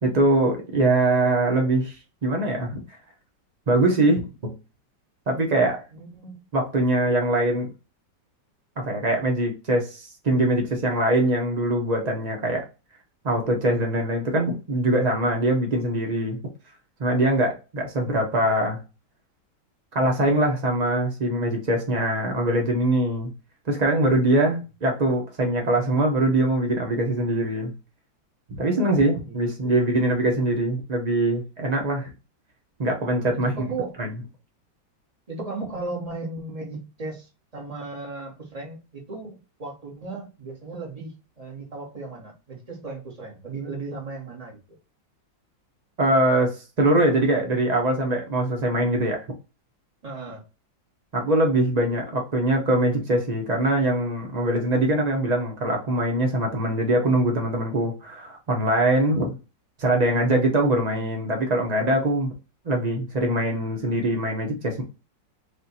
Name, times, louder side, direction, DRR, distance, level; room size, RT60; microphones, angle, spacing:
voice 1, 0.0-2.8 3.7-4.5 5.3-5.8 6.5-7.7 8.8-12.6 13.2-16.4 17.0-18.8 19.9-23.3 23.7-27.7 28.5-32.1 32.8-33.5 34.0-34.1 46.0-49.3 51.1-59.4 59.8-62.3 62.6-64.8, right 1 dB, 90° right, 0.3 m, -23 dB
voice 2, 5.9-6.4 28.6-29.4 29.6-30.0 33.3-34.0 35.3-44.6 50.0-50.4, right 3 dB, 20° right, 1.2 m, -36 dB
3.6 x 2.6 x 4.1 m
omnidirectional pair, 2.1 m